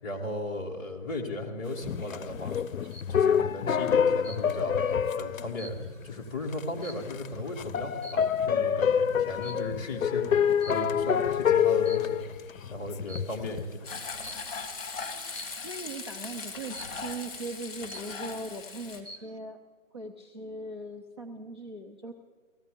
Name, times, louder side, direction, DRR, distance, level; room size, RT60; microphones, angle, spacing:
voice 1, 0.0-2.6 2.8-12.2 12.7-13.9, left 1 dB, 15° left, -4 dB, 1.6 m, -36 dB
sound 1, 1.8-6.2 6.5-6.6 7.0-13.6, left 8 dB, 85° left, 0.6 m, -27 dB
sound 2, 2.6-3.2 4.2-4.8 5.2-7.4 8.0-8.4 9.4-9.8 10.6-11.2 11.7-12.4 13.1-13.4 14.2-14.6 15.3-15.7 16.7-17.2 17.6-17.7 17.9-18.5 18.9-19.4, equal, 60° right, 1.3 m, -47 dB
Frying (food), 13.8-19.0, left 4 dB, 45° left, 2.5 m, -39 dB
voice 2, 15.6-19.6 19.9-22.1, right 2 dB, 20° right, -2 dB, 0.5 m, -39 dB
18.0 x 14.5 x 5.2 m, 1.5 s
hypercardioid pair, 165°, 40 cm